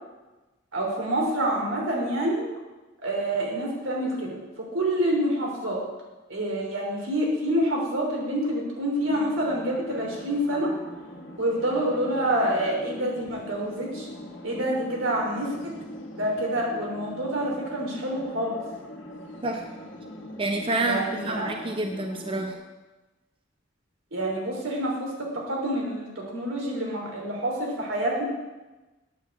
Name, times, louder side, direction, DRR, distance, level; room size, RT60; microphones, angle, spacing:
voice 1, 0.7-2.5 3.0-4.4 4.7-5.8 6.3-10.7 11.4-14.1 14.4-15.7 16.1-18.6 20.8-21.5 24.1-28.2, right 1 dB, 85° right, -1 dB, 3.2 m, -27 dB
sound 1, 9.0-22.5, left 1 dB, 70° left, 1.6 m, -42 dB
voice 2, 20.4-22.5, right 2 dB, 25° right, 3 dB, 0.7 m, -28 dB
9.2 x 6.4 x 8.1 m, 1.2 s
head